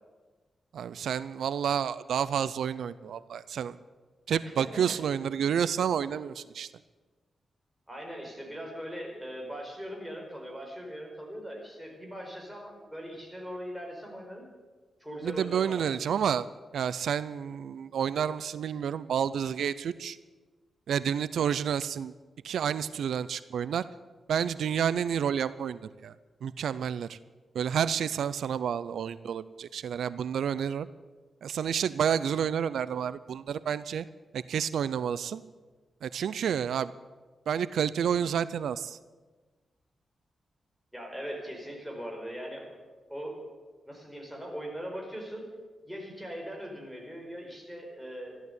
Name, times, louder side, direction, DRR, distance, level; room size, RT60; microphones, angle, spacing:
voice 1, 0.7-3.8 4.3-6.7 15.2-16.5 16.7-20.2 20.9-22.1 22.4-23.8 24.3-26.1 26.4-27.2 27.5-30.9 31.4-34.1 34.3-35.4 36.0-36.9 37.5-39.0, right 8 dB, 90° right, 16 dB, 0.4 m, -30 dB
voice 2, 4.4-5.0 7.9-14.4 15.0-16.2 40.9-42.7 43.1-43.4 43.9-45.5 45.9-48.4, equal, ahead, 0 dB, 4.6 m, -40 dB
14.0 x 12.0 x 8.1 m, 1.3 s
wide cardioid pair, 115°, 0 cm